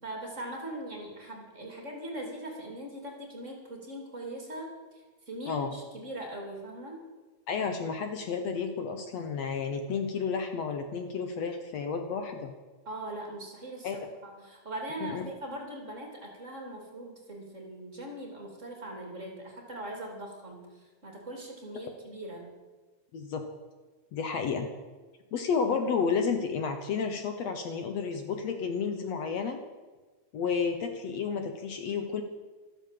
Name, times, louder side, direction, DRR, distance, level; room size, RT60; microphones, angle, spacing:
voice 1, 0.0-7.0 12.8-20.7 21.0-22.5, right 1 dB, 25° right, 1 dB, 3.1 m, -41 dB
voice 2, 7.5-12.5 13.8-14.0 15.0-15.2 23.1-23.4 24.1-24.7 25.3-29.6 30.3-32.2, left 5 dB, 65° left, 6 dB, 2.2 m, -31 dB
13.5 x 12.5 x 7.5 m, 1.3 s
omnidirectional pair, 3.4 m